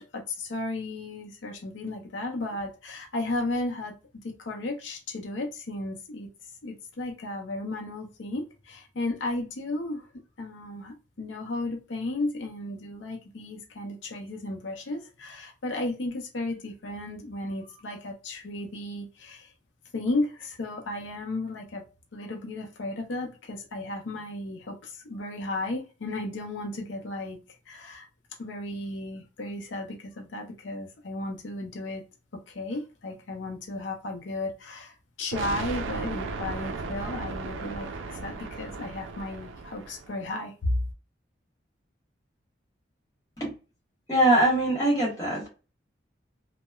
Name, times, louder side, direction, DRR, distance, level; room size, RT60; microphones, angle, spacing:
voice 1, 0.0-3.9 4.2-6.3 6.6-10.1 10.4-19.5 19.9-21.8 22.1-27.4 27.7-28.1 28.4-32.0 32.5-40.7, left 2 dB, 80° left, 2 dB, 0.6 m, -34 dB
sound 1, 35.3-40.2, right 4 dB, 90° right, 0.4 m, -36 dB
voice 2, 44.1-45.5, right 1 dB, 20° left, -4 dB, 1.2 m, -22 dB
3.0 x 2.0 x 2.2 m, 0.32 s
head